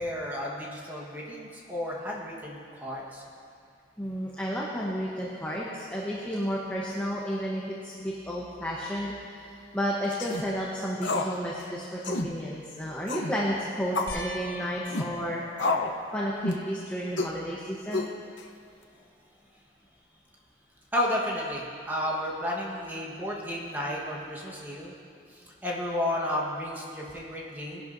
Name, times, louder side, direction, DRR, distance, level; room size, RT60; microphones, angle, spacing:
voice 1, 0.0-3.2 20.9-24.9 25.6-27.8, left 1 dB, 10° right, -3 dB, 1.3 m, -32 dB
voice 2, 4.0-15.8 16.1-18.1, equal, 10° left, -5 dB, 1.0 m, -32 dB
sound 1, 10.1-10.4 11.0-11.3 11.6-11.7 12.0-12.3 13.1-13.3 13.9-14.2 14.9-15.1 15.6-16.0 16.4-16.7 17.2-17.4 17.9-18.4, left 3 dB, 80° left, 0.8 m, -29 dB
sound 2, 14.1-16.7 17.3-17.9 18.2-18.3 21.5-21.6, left 1 dB, 50° left, 1.7 m, -44 dB
19.5 x 11.0 x 2.7 m, 2.4 s
head